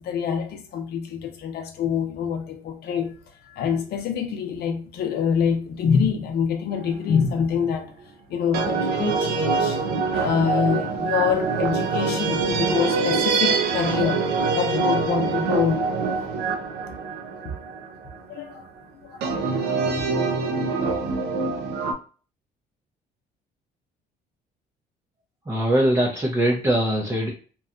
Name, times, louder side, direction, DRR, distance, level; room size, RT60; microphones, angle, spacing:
voice 1, 0.0-3.1 3.4-7.9 8.3-15.9 17.4-17.5 18.3-18.7 19.0-20.2 20.6-20.7, left 7 dB, 70° left, 0.6 m, -26 dB
sound 1, 6.7-7.2 8.5-18.2 19.2-21.9, right 4 dB, 80° right, 0.5 m, -24 dB
voice 2, 25.5-27.3, right 1 dB, 15° right, 0.5 m, -21 dB
2.8 x 2.2 x 2.4 m
cardioid pair, 110°, 17 cm